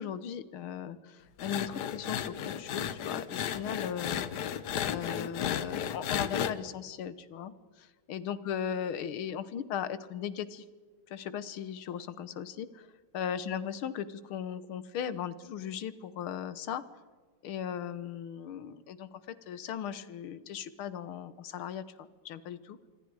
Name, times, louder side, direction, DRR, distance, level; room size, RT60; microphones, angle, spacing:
voice 1, 0.0-4.2 4.8-7.5 7.8-10.6 11.1-12.9 13.1-16.8 17.4-22.8, left 9 dB, 80° left, 15 dB, 1.9 m, -37 dB
sound 1, 1.4-6.5, left 9 dB, 60° left, 1.3 m, -34 dB
25.5 x 25.5 x 4.8 m, 1.4 s
omnidirectional pair, 2.3 m